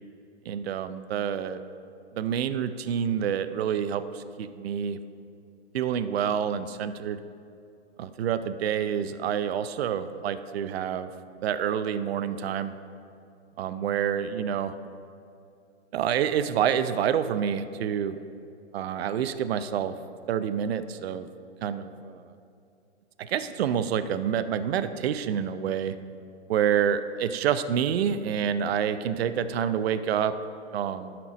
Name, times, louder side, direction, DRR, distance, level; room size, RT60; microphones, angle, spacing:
voice 1, 0.5-1.6 2.1-5.0 5.7-7.2 8.0-11.1 11.4-12.7 13.6-14.7 15.9-18.2 18.7-19.9 20.3-21.3 21.6-22.2 23.2-26.0 26.5-30.3 30.7-31.2, right 8 dB, 60° right, 12 dB, 0.6 m, -28 dB
12.5 x 4.5 x 5.1 m, 2.6 s
hypercardioid pair, 130°, 34 cm